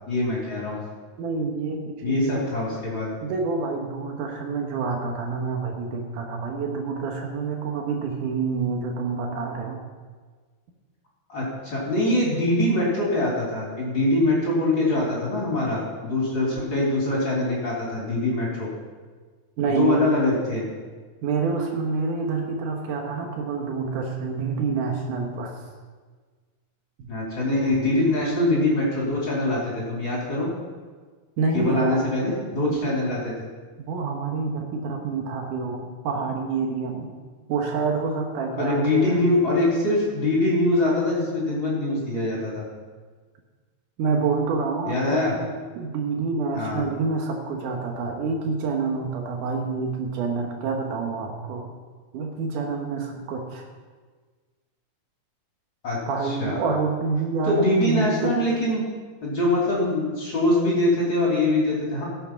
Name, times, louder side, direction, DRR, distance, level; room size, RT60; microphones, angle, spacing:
voice 1, 0.1-0.8 2.0-3.1 11.3-18.7 19.7-20.7 27.1-30.5 31.5-33.3 38.6-42.6 44.8-45.4 46.5-46.8 55.8-56.6 57.4-58.8 59.2-62.0, left 1 dB, 40° left, -5 dB, 3.4 m, -23 dB
voice 2, 1.2-2.4 3.2-9.8 19.6-20.1 21.2-25.5 27.0-27.1 31.4-32.1 32.7-32.9 33.9-37.1 37.5-39.2 44.0-45.5 45.8-51.7 52.1-53.6 56.1-58.3, right 4 dB, 85° right, 2 dB, 2.8 m, -27 dB
17.0 x 7.7 x 5.9 m, 1.5 s
omnidirectional pair, 3.5 m